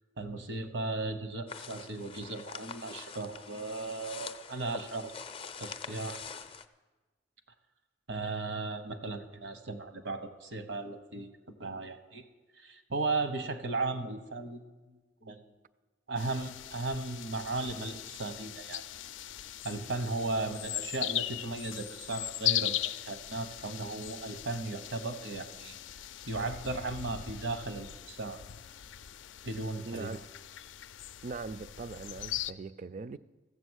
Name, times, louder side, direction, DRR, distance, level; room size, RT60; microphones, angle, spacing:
voice 1, 0.2-5.1 5.6-6.2 8.1-11.3 11.6-12.2 12.5-15.4 16.1-18.8 19.6-25.8 26.3-28.4 29.4-30.2, right 3 dB, 80° right, 1.0 m, -36 dB
sound 1, 1.5-6.6, left 6 dB, 30° left, 0.5 m, -45 dB
sound 2, 16.2-32.5, left 13 dB, 85° left, 0.4 m, -39 dB
voice 2, 29.8-30.2 31.2-33.2, right 4 dB, 45° right, 0.3 m, -41 dB
14.5 x 7.5 x 6.3 m
head